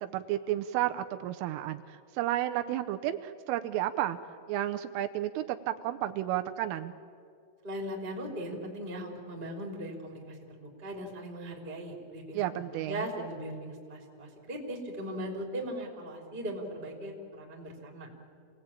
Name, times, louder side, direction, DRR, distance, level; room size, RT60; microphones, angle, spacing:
voice 1, 0.0-4.2 4.5-6.9 12.3-13.1, right 13 dB, 80° right, 8 dB, 3.2 m, -32 dB
voice 2, 7.6-18.1, right 1 dB, 15° right, 0 dB, 2.4 m, -39 dB
27.5 x 18.0 x 8.8 m, 2.3 s
omnidirectional pair, 5.9 m